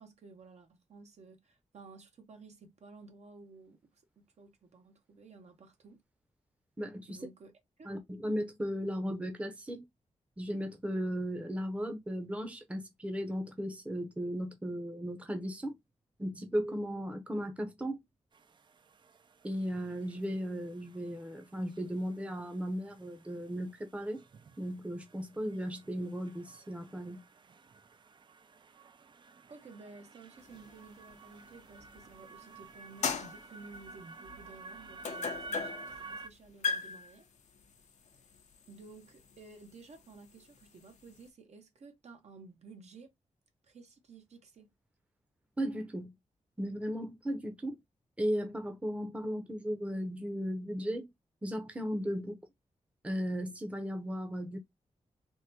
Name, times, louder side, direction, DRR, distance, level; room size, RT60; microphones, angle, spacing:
voice 1, 0.0-6.0 7.1-7.5 7.8-7.9 29.5-37.3 38.7-43.1 43.6-44.7, right 4 dB, 65° right, 0.8 m, -54 dB
voice 2, 6.8-7.2 7.8-9.9 10.4-15.8 16.2-18.0 19.4-24.2 24.6-27.3 45.6-46.1 46.6-47.8 48.2-51.1 51.4-52.4 53.0-54.6, equal, 10° right, 0.7 m, -36 dB
sound 1, 18.3-36.3, right 3 dB, 40° right, 0.3 m, -52 dB
sound 2, 30.5-32.3 32.8-41.3, left 5 dB, 75° left, 0.6 m, -40 dB
3.6 x 2.1 x 2.7 m
cardioid pair, 90°, 12 cm